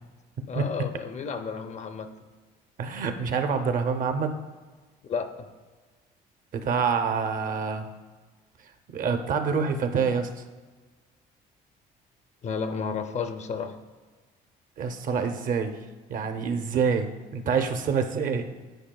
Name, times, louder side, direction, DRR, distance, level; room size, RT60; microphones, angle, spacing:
voice 1, 0.5-2.1 5.0-5.5 12.4-13.8, left 5 dB, 40° left, 9 dB, 0.5 m, -32 dB
voice 2, 2.8-4.3 6.5-7.9 8.9-10.3 14.8-15.8 16.1-18.5, right 5 dB, 55° right, 7 dB, 0.6 m, -26 dB
10.5 x 4.8 x 2.2 m, 1.3 s
cardioid pair, 110°, 17 cm